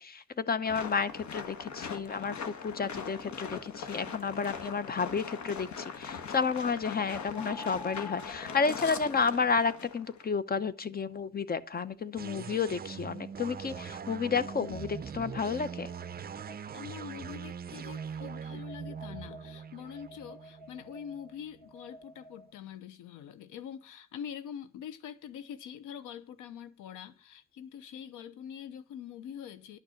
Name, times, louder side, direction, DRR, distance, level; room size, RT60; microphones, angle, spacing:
voice 1, 0.0-15.9, left 5 dB, 30° left, 0.9 m, -31 dB
sound 1, 0.6-10.3, left 6 dB, 70° left, 1.5 m, -41 dB
sound 2, 7.3-12.5 13.2-16.9 17.9-22.5, left 1 dB, 5° left, 2.4 m, -51 dB
sound 3, 12.2-21.6, right 7 dB, 30° right, 0.6 m, -42 dB
voice 2, 16.7-29.8, left 8 dB, 90° left, 0.9 m, -44 dB
11.5 x 6.5 x 7.1 m
cardioid pair, 90°, 30 cm